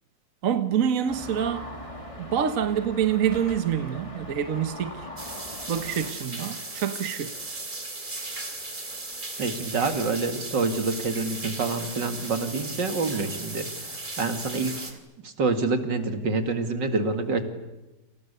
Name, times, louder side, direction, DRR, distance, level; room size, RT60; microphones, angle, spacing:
voice 1, 0.4-1.7 2.2-5.0 5.7-7.3, right 8 dB, 50° right, 1.4 m, -26 dB
sound 1, 1.1-6.1, left 1 dB, 15° left, 2.9 m, -40 dB
sound 2, 5.2-14.9, right 2 dB, 25° right, 3.1 m, -36 dB
voice 2, 9.4-13.7 14.2-14.9 15.2-17.4, right 3 dB, 75° right, 2.9 m, -27 dB
28.5 x 27.5 x 6.9 m
omnidirectional pair, 1.9 m